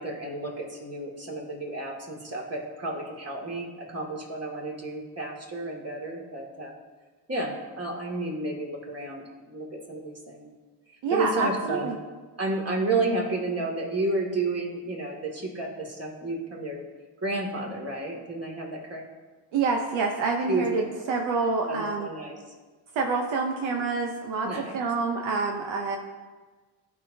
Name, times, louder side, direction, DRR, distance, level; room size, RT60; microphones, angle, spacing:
voice 1, 0.0-6.7 7.3-10.5 11.1-11.9 12.4-16.9 17.2-19.0 20.5-21.1 21.6-22.4 24.4-24.8, right 2 dB, 30° right, -1 dB, 2.3 m, -31 dB
voice 2, 11.0-11.9 19.5-22.1 22.9-24.5 24.7-26.0, right 4 dB, 80° right, 2 dB, 0.9 m, -27 dB
14.0 x 4.8 x 2.8 m, 1.4 s
supercardioid pair, 65°, 46 cm